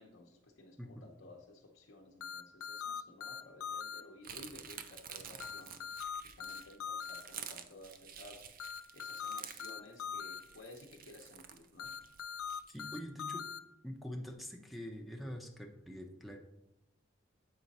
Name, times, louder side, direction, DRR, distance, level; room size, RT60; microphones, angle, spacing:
voice 1, 0.0-11.9, left 2 dB, 70° left, 1 dB, 0.8 m, -55 dB
sound 1, 2.2-4.0 5.4-7.2 8.6-10.4 11.8-13.6, left 6 dB, 90° left, 0.4 m, -41 dB
sound 2, 4.2-12.8, right 8 dB, 45° right, 0.5 m, -50 dB
voice 2, 12.7-13.5 13.8-16.4, equal, ahead, 3 dB, 0.7 m, -45 dB
7.9 x 5.0 x 4.1 m, 0.91 s
head